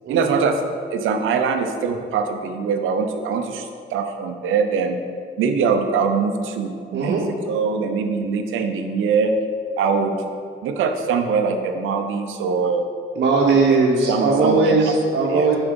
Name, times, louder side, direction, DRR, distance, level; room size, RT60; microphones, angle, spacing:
voice 1, 0.1-0.6 0.9-5.0 5.4-9.3 9.8-10.1 10.6-12.8 13.5-13.6 14.1-14.9 15.3-15.5, right 5 dB, 85° right, 6 dB, 0.8 m, -22 dB
voice 2, 6.9-7.3 13.2-15.6, right 3 dB, 55° right, -4 dB, 1.1 m, -18 dB
6.9 x 5.1 x 5.3 m, 2.2 s
cardioid pair, 90°, 20 cm